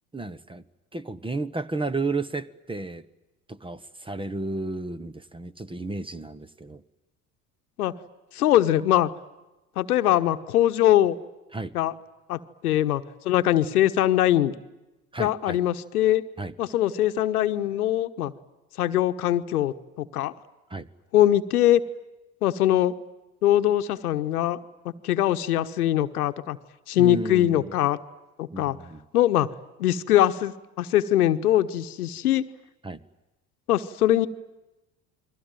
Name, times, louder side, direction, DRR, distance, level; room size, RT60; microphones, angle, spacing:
voice 1, 0.1-0.6 0.9-3.0 3.5-6.8 11.5-11.7 15.1-15.6 16.4-16.5 20.7-20.9 27.0-27.7 28.5-29.0 32.8-33.0, right 3 dB, 10° right, 17 dB, 1.2 m, -32 dB
voice 2, 8.3-9.1 9.8-11.2 11.7-11.9 12.3-14.5 15.2-16.2 16.6-18.3 18.8-20.3 21.1-21.8 22.4-22.9 23.4-24.6 25.0-26.6 26.9-28.0 28.4-28.8 29.1-29.5 29.8-32.4 33.7-34.3, left 13 dB, 80° left, 10 dB, 1.2 m, -22 dB
29.0 x 22.0 x 9.2 m, 1.0 s
hypercardioid pair, 70°, 44 cm